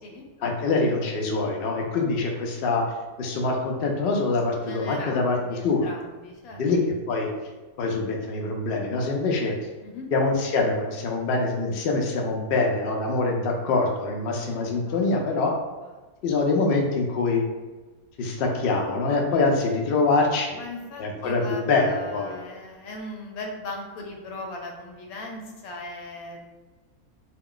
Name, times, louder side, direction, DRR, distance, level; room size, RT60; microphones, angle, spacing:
voice 1, 0.4-2.8 3.2-5.4 5.6-5.9 6.5-6.8 7.1-7.3 7.8-9.6 10.1-15.5 16.2-17.4 18.2-20.6 21.0-22.4, left 3 dB, 65° left, 1 dB, 0.5 m, -24 dB
voice 2, 4.6-6.6 9.8-10.1 14.5-15.0 15.8-15.9 18.4-18.6 20.5-26.4, left 2 dB, 85° left, 1 dB, 1.1 m, -39 dB
2.3 x 2.3 x 3.6 m, 1.2 s
omnidirectional pair, 1.5 m